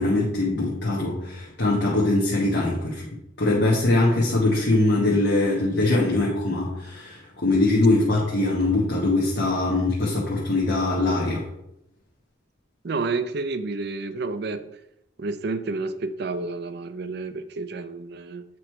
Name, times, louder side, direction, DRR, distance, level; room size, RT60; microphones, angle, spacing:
voice 1, 0.0-3.0 3.4-11.4, left 2 dB, 60° left, 1.3 m, -22 dB
voice 2, 12.8-14.7 15.2-18.4, right 3 dB, 55° right, 0.5 m, -30 dB
8.2 x 3.2 x 4.5 m
head